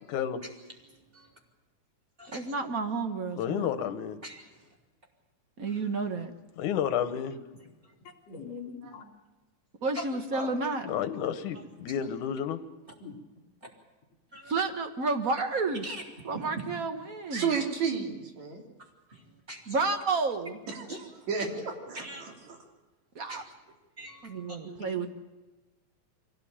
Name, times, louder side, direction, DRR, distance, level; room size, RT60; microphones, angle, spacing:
voice 1, 0.1-0.4 3.4-4.2 6.6-7.4 10.8-12.6, left 9 dB, 85° left, 10 dB, 2.7 m, -31 dB
voice 2, 0.9-1.3 2.2-2.5 4.2-4.7 7.8-7.9 11.5-11.6 14.3-14.5 15.8-16.0 16.3-16.5 19.1-19.8 20.9-21.0 21.9-22.2 23.3-23.5 24.0-24.6, right 1 dB, 15° right, 1 dB, 3.6 m, -44 dB
voice 3, 2.3-3.7 5.6-6.3 9.8-10.9 14.5-15.8 16.2-17.5 19.7-20.6 23.1-23.4 24.2-25.1, right 4 dB, 50° right, 6 dB, 1.0 m, -31 dB
voice 4, 8.0-9.1 10.0-10.6 13.0-13.2 13.6-13.7 15.7-15.8 21.0-21.1 24.8-25.1, left 3 dB, 65° left, 2 dB, 4.3 m, -42 dB
voice 5, 17.3-18.6 20.7-20.9 21.3-22.6 24.6-25.0, right 5 dB, 65° right, 2 dB, 4.1 m, -32 dB
24.0 x 17.5 x 8.8 m, 1.2 s
omnidirectional pair, 3.5 m